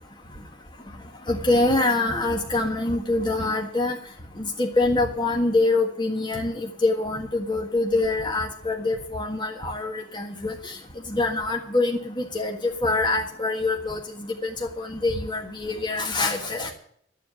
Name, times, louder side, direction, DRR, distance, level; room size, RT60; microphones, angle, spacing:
voice 1, 1.3-4.0 4.4-10.8 11.1-12.6 12.8-14.0 14.4-14.5 14.8-16.7, left 2 dB, 25° left, 1 dB, 1.6 m, -25 dB
13.5 x 7.4 x 9.1 m, 0.65 s
head